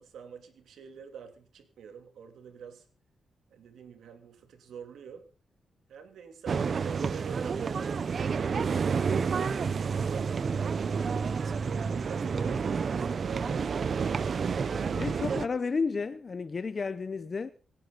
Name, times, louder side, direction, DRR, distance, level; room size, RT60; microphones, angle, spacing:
voice 1, 0.0-2.8 3.5-5.3 5.9-10.5 11.5-14.6, right 7 dB, 85° right, 3.0 m, -46 dB
sound 1, 6.5-15.5, right 5 dB, 45° right, 0.8 m, -29 dB
voice 2, 15.0-17.5, left 4 dB, 35° left, 0.7 m, -32 dB
27.0 x 10.5 x 4.0 m
cardioid pair, 120°, 0 cm